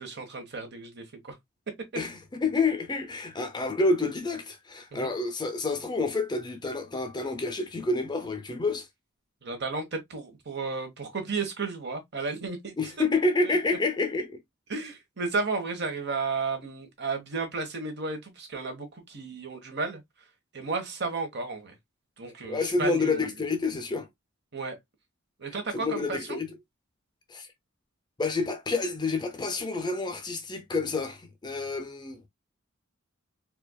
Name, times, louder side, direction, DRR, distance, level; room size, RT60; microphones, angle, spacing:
voice 1, 0.0-1.4 4.9-5.1 9.4-12.7 13.4-13.6 14.7-20.0 20.5-21.8 22.2-23.3 24.5-24.8 25.4-26.4, right 4 dB, 55° right, 1.1 m, -33 dB
voice 2, 2.0-8.9 12.8-14.4 22.4-24.1 25.7-26.5 27.3-27.5 28.2-32.3, left 3 dB, 20° left, 0.6 m, -28 dB
4.4 x 2.4 x 2.3 m
head